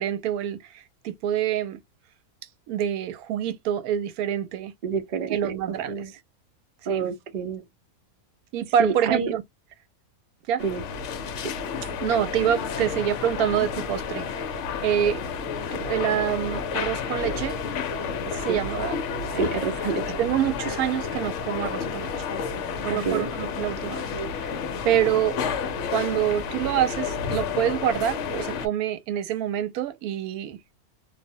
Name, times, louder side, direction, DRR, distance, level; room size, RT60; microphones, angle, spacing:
voice 1, 0.0-1.8 2.7-4.7 5.3-6.2 6.9-7.1 8.5-9.4 10.5-10.6 12.0-14.5 14.8-15.2 15.7-17.6 18.3-19.0 19.3-19.4 20.2-22.3 22.8-24.1 24.4-24.5 24.8-25.4 25.9-30.6, right 10 dB, 90° right, 1.1 m, -26 dB
voice 2, 4.8-5.5 5.9-6.1 6.9-7.6 8.8-9.3 10.6-10.8 11.4-11.5 18.5-18.6 19.3-20.1 22.9-23.3, right 5 dB, 55° right, 0.6 m, -28 dB
sound 1, 10.6-28.7, left 6 dB, 65° left, 0.8 m, -30 dB
2.5 x 2.0 x 2.6 m
omnidirectional pair, 1.5 m